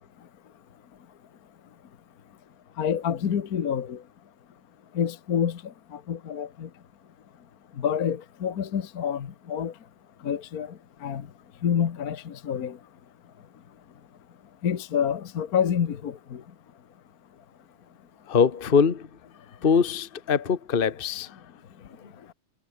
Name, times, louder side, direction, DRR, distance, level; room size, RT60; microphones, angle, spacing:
voice 1, 2.8-4.0 4.9-6.7 7.8-9.7 10.2-11.3 11.6-12.8 14.6-16.4, left 8 dB, 50° left, 1.6 m, -28 dB
voice 2, 18.3-19.1 19.6-21.4 22.0-22.1, left 6 dB, 30° left, 1.4 m, -23 dB
omnidirectional pair, 2.2 m